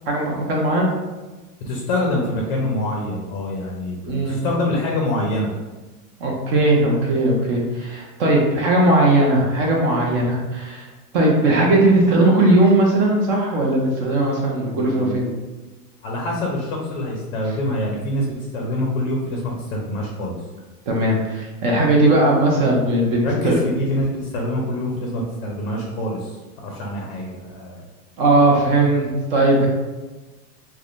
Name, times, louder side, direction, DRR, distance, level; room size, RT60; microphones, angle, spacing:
voice 1, 0.1-0.9 4.1-4.4 6.2-10.9 11.1-15.3 20.9-23.6 28.2-29.7, right 1 dB, 35° right, -1 dB, 0.5 m, -18 dB
voice 2, 1.6-5.5 14.5-15.3 16.0-20.4 23.2-27.8, left 1 dB, 40° left, -1 dB, 0.5 m, -25 dB
3.4 x 2.2 x 2.4 m, 1.2 s
supercardioid pair, 145°, 48 cm